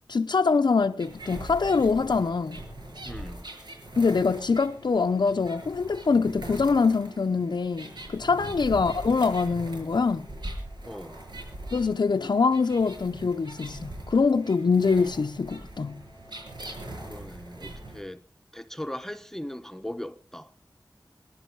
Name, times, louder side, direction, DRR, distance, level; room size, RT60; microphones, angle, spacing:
voice 1, 0.1-2.6 4.0-10.3 11.7-16.0, left 4 dB, 75° left, 0.6 m, -24 dB
sound 1, 1.0-18.0, right 1 dB, 75° right, 6.9 m, -41 dB
voice 2, 3.0-3.4 8.3-8.5 10.9-11.2 17.1-18.2 18.5-20.5, left 1 dB, 5° left, 1.0 m, -39 dB
22.5 x 11.0 x 4.6 m
wide cardioid pair, 65°, 8 cm